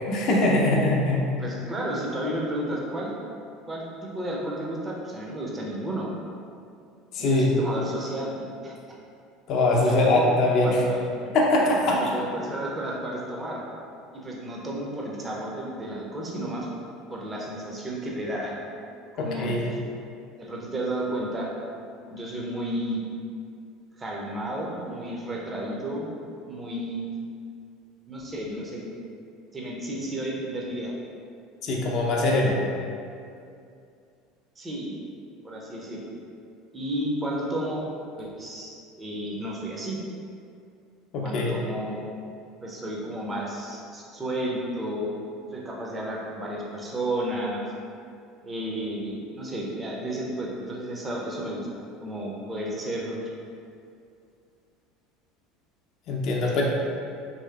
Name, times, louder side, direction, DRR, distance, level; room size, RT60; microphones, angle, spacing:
voice 1, 0.1-1.2 7.1-7.5 9.5-10.8 11.3-12.0 19.2-19.7 31.6-32.6 41.1-41.6 56.1-56.6, left 2 dB, 50° left, -2 dB, 0.5 m, -22 dB
voice 2, 1.4-3.2 3.7-6.1 7.2-8.7 9.8-10.3 10.6-11.0 11.9-13.7 14.1-16.7 17.1-18.6 19.2-19.8 20.4-21.5 22.1-23.0 24.0-26.1 26.5-27.1 28.1-28.9 29.5-30.9 34.6-34.9 35.4-36.1 36.7-37.8 38.2-40.0 41.2-42.0 42.6-45.1 45.5-47.6 48.4-51.7 52.0-53.3 56.4-56.6, right 1 dB, 20° right, -3 dB, 0.6 m, -32 dB
3.0 x 2.8 x 2.3 m, 2.4 s
figure-of-eight pair, 70°, 0 cm